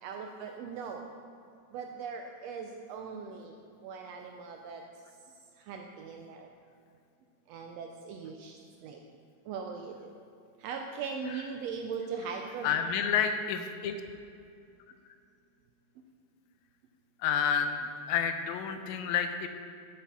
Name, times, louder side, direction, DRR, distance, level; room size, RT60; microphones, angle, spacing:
voice 1, 0.0-1.1 1.7-3.5 3.8-4.8 5.6-6.5 7.5-9.0 9.5-10.1 10.6-12.8, right 5 dB, 80° right, 3 dB, 1.5 m, -40 dB
voice 2, 12.6-14.0 17.2-19.5, left 7 dB, 80° left, 7 dB, 1.9 m, -29 dB
10.0 x 7.6 x 3.6 m, 2.5 s
omnidirectional pair, 3.4 m